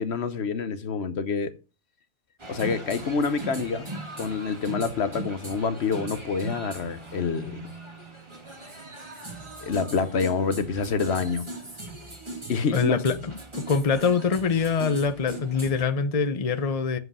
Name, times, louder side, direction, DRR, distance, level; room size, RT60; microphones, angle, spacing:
voice 1, 0.0-1.5 2.5-3.9 4.2-7.7 9.6-11.5 12.5-13.0, left 5 dB, 65° left, 1.2 m, -27 dB
sound 1, 2.4-15.8, right 2 dB, 25° right, 2.2 m, -39 dB
voice 2, 12.7-17.0, left 5 dB, 35° left, 0.9 m, -24 dB
8.1 x 7.9 x 5.5 m
omnidirectional pair, 1.2 m